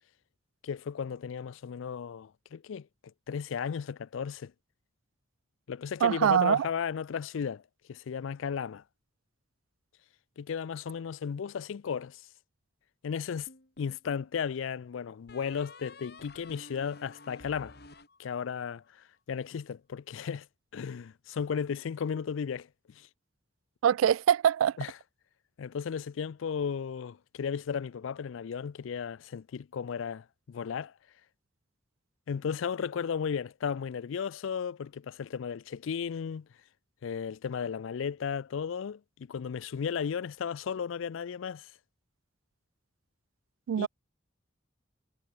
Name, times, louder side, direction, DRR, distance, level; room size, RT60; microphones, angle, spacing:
voice 1, 0.6-2.9 3.3-4.5 5.7-7.6 7.9-8.8 10.4-12.3 13.0-13.5 13.8-17.8 18.2-20.5 20.7-23.1 24.8-24.9 25.6-30.9 32.3-36.5 37.0-41.7 43.8-43.9, left 7 dB, 75° left, 0.4 m, -35 dB
voice 2, 6.0-6.7 23.8-24.8 43.7-43.9, right 9 dB, 90° right, 0.3 m, -23 dB
sound 1, 13.5-14.3 15.3-18.8, left 2 dB, 50° left, 5.0 m, -52 dB
head